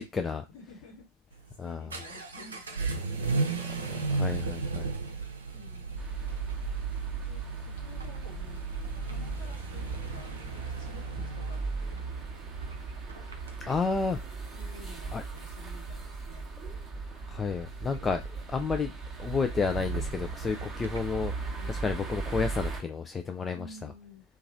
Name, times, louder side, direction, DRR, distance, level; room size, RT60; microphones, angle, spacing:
voice 1, 0.0-0.4 1.6-1.9 3.9-4.9 13.7-14.2 15.1-15.2 17.1-18.9 19.2-21.3 21.7-23.9, left 4 dB, 15° left, 0.3 m, -31 dB
voice 2, 0.5-3.5 5.5-6.0 7.2-12.0 14.5-16.5 21.1-21.8 23.5-24.2, left 2 dB, 55° left, 1.3 m, -52 dB
Vehicle / Accelerating revving vroom, 1.3-21.1, right 4 dB, 70° right, 0.6 m, -37 dB
sound 1, 6.0-22.8, right 4 dB, 15° right, 0.9 m, -38 dB
2.9 x 2.4 x 2.6 m
figure-of-eight pair, 90°, 0 cm